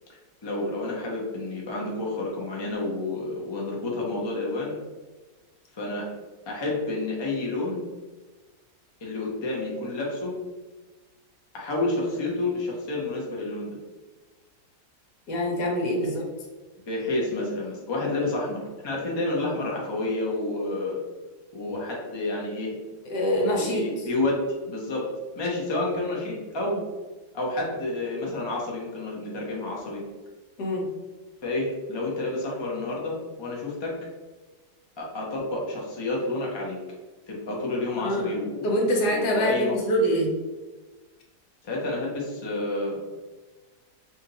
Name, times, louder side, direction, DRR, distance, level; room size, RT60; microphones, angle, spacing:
voice 1, 0.4-4.8 5.8-6.1 6.5-7.8 9.0-10.3 11.5-13.8 16.9-21.0 21.5-22.7 23.5-24.4 24.7-25.1 25.3-26.8 27.3-30.0 31.4-33.9 35.0-36.8 37.3-39.8 41.6-43.0, left 2 dB, 40° left, -3 dB, 0.4 m, -29 dB
voice 2, 15.3-16.2 23.0-24.1 30.6-30.9 38.0-38.3 38.6-40.3, equal, 75° left, 0 dB, 1.4 m, -25 dB
2.8 x 2.6 x 3.9 m, 1.2 s
omnidirectional pair, 1.8 m